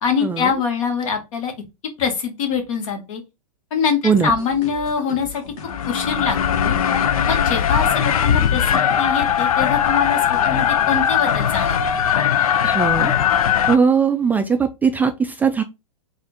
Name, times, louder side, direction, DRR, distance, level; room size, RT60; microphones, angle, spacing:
voice 1, 0.0-1.5 2.0-3.2 3.7-5.4 5.9-6.8 7.3-11.8, left 6 dB, 65° left, 1.6 m, -24 dB
sound 1, 4.1-11.8, left 4 dB, 45° left, 1.6 m, -39 dB
sound 2, 5.6-13.8, left 9 dB, 80° left, 0.5 m, -19 dB
voice 2, 12.6-13.1 13.7-15.6, right 5 dB, 10° right, 0.3 m, -19 dB
4.1 x 2.5 x 4.1 m
hypercardioid pair, 115°, 18 cm